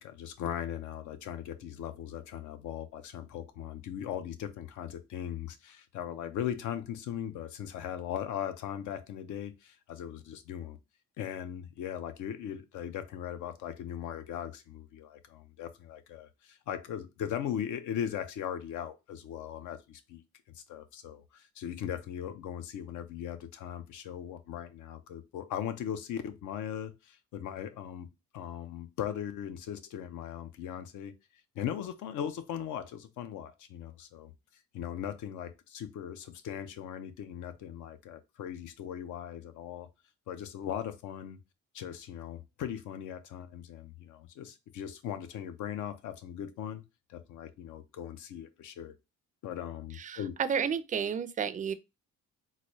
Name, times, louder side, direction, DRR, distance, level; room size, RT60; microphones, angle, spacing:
voice 1, 0.0-10.8 11.2-28.1 28.3-31.1 31.5-34.3 34.7-39.9 40.3-41.4 41.7-46.8 47.1-49.0 49.4-50.3, left 9 dB, 80° left, 0.6 m, -39 dB
voice 2, 50.0-51.7, right 7 dB, 25° right, 0.4 m, -31 dB
3.9 x 2.2 x 3.0 m
cardioid pair, 90°, 30 cm